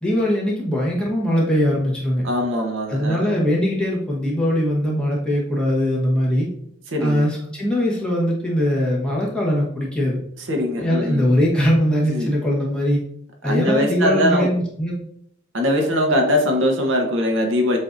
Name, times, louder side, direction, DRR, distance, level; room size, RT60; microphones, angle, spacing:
voice 1, 0.0-2.3 2.9-6.5 7.0-10.2 10.7-13.0 13.4-15.0, equal, 5° left, -4 dB, 1.1 m, -21 dB
voice 2, 2.2-3.4 6.9-7.3 10.5-11.3 12.1-12.3 13.4-14.5 15.5-17.8, left 1 dB, 75° right, 2 dB, 0.8 m, -21 dB
7.4 x 2.7 x 2.5 m, 0.68 s
head